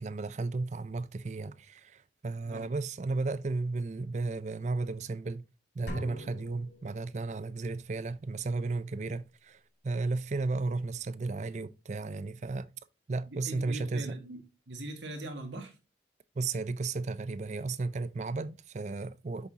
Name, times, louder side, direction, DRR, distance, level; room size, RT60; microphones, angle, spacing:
voice 1, 0.0-5.4 5.8-12.7 13.1-14.2 16.4-19.5, right 3 dB, 40° right, 0.4 m, -34 dB
sound 1, 5.9-7.5, equal, 80° left, 2.6 m, -43 dB
voice 2, 13.3-15.8, right 2 dB, 85° right, 1.9 m, -41 dB
7.2 x 6.7 x 2.8 m
head